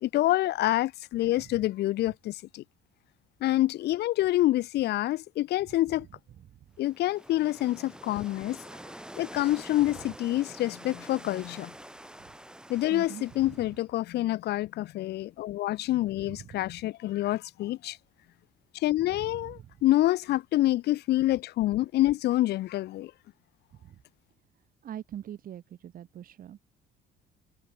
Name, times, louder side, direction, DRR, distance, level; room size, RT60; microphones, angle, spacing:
voice 1, 0.0-2.6 3.4-6.1 6.8-8.6 9.2-11.7 12.7-18.0 18.7-23.1, left 15 dB, 75° left, 3.8 m, -27 dB
sound 1, 6.8-13.9, right 1 dB, 5° right, 7.4 m, -47 dB
voice 2, 12.9-13.5 16.3-16.6 19.0-19.7 23.8-24.0 24.8-26.6, right 10 dB, 55° right, 6.9 m, -43 dB
cardioid pair, 110°, 17 cm